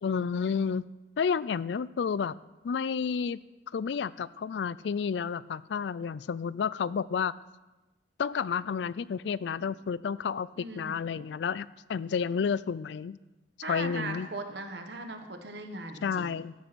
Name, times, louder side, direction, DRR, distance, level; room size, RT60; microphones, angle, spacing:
voice 1, 0.0-0.9 1.2-2.3 2.6-3.4 3.7-7.3 8.2-10.5 10.7-13.2 13.7-14.3 16.0-16.5, left 6 dB, 70° left, 19 dB, 0.4 m, -30 dB
voice 2, 10.6-11.2 13.6-16.3, right 2 dB, 65° right, 6 dB, 1.4 m, -39 dB
13.5 x 7.8 x 6.2 m, 1.1 s
head